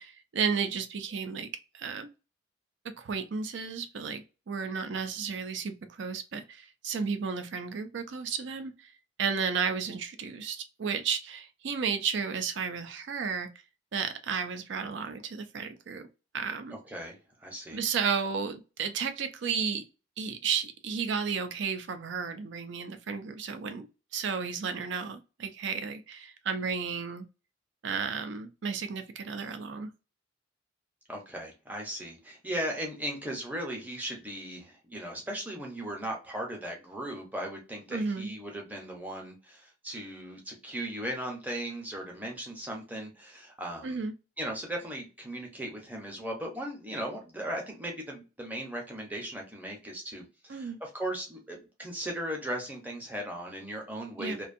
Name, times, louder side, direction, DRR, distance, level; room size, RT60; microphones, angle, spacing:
voice 1, 0.0-2.1 3.0-8.9 9.2-13.5 13.9-16.1 16.3-16.8 17.7-19.8 20.2-23.9 24.1-27.3 27.8-29.9 37.9-38.3 43.8-44.1 50.5-50.8 54.2-54.4, right 6 dB, 65° right, 0.4 m, -33 dB
voice 2, 16.7-17.8 31.1-44.0 44.4-54.5, right 1 dB, 10° right, 0.6 m, -37 dB
2.5 x 2.2 x 2.5 m
head